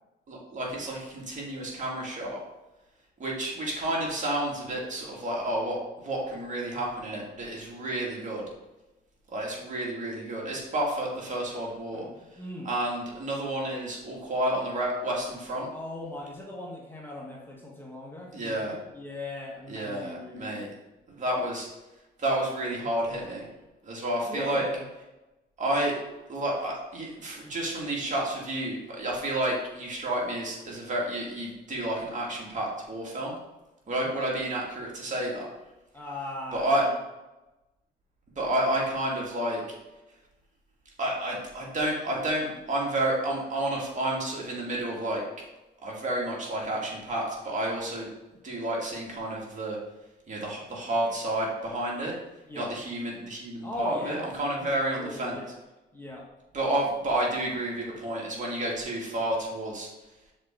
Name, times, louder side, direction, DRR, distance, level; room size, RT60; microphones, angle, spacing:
voice 1, 0.3-2.4 3.2-8.4 9.3-12.1 12.3-12.4 12.6-15.7 18.3-18.7 19.7-20.7 21.1-21.7 22.2-23.5 23.8-24.6 25.6-26.0 26.3-33.3 33.9-35.5 36.5-36.9 38.4-39.6 41.0-45.2 45.8-48.1 48.4-49.8 50.3-52.2 52.5-55.4 56.5-59.9, right 1 dB, 40° right, -3 dB, 2.2 m, -30 dB
voice 2, 11.9-12.7 15.7-20.6 24.2-24.9 34.1-34.3 35.9-37.0 52.5-52.7 53.6-54.3 54.6-55.5 55.9-56.3, left 1 dB, 10° left, -3 dB, 1.3 m, -39 dB
6.5 x 4.3 x 3.8 m, 1.0 s
cardioid pair, 90°, 20 cm